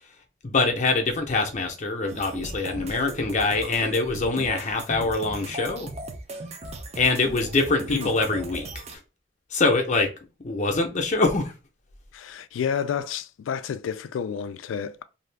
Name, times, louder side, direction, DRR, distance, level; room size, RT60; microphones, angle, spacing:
voice 1, 0.4-5.9 6.9-9.0 9.5-10.1 10.4-11.5, left 3 dB, 40° left, 0.6 m, -24 dB
sound 1, 2.1-9.0, right 2 dB, 35° right, 0.5 m, -37 dB
voice 2, 12.1-15.0, left 7 dB, 85° left, 0.3 m, -30 dB
2.6 x 2.3 x 3.3 m
head